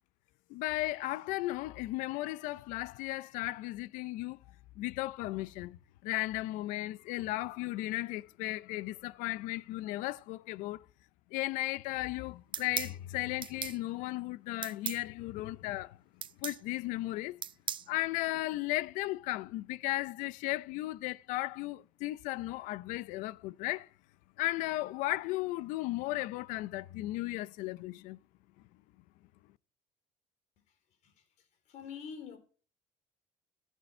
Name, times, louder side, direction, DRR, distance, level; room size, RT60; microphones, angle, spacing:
voice 1, 0.5-4.4 4.8-5.8 6.0-10.8 11.3-16.0 16.4-17.4 17.9-23.9 24.4-28.2, left 18 dB, 85° left, 0.6 m, -35 dB
sound 1, 12.5-13.0 13.4-13.8 14.6-15.0 16.2-16.6 17.4-17.9, right 9 dB, 40° right, 0.5 m, -37 dB
voice 2, 31.7-32.4, left 6 dB, 65° left, 3.6 m, -44 dB
15.5 x 8.2 x 4.4 m
cardioid pair, 105°, 13 cm